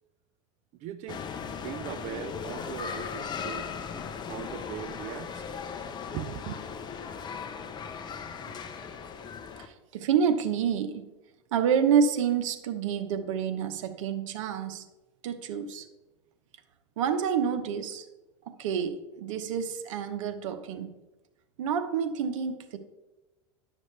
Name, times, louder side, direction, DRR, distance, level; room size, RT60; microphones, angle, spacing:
voice 1, 0.8-1.3 1.6-3.8 4.3-5.5 6.1-6.6, right 11 dB, 45° right, 0.4 m, -39 dB
sound 1, 1.1-9.7, left 6 dB, 25° left, 0.8 m, -38 dB
voice 2, 9.6-11.0 11.5-14.9 15.2-15.9 17.0-18.1 18.5-20.9 21.6-22.8, right 7 dB, 80° right, 0.9 m, -28 dB
11.0 x 6.3 x 3.3 m
supercardioid pair, 120°, 16 cm